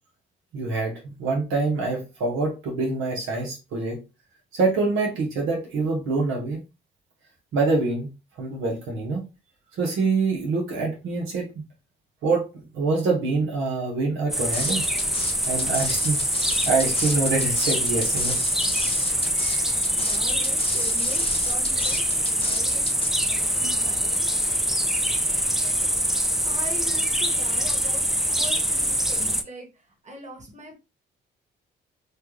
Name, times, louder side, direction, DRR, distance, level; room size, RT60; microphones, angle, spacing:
voice 1, 0.5-4.0 4.5-6.6 7.5-8.1 8.4-9.3 9.8-11.5 12.2-12.5 12.7-14.9 15.5-16.2 16.6-18.4, right 3 dB, 85° right, -1 dB, 1.1 m, -25 dB
sound 1, 14.3-29.4, equal, ahead, 0.3 m, -24 dB
sound 2, 14.5-23.1, left 4 dB, 30° left, 0.7 m, -34 dB
voice 2, 19.5-22.8 23.1-24.8 25.6-25.8 26.4-28.0 28.3-30.7, equal, 35° right, 0 dB, 1.6 m, -42 dB
3.3 x 2.4 x 3.1 m, 0.28 s
cardioid pair, 90°, 20 cm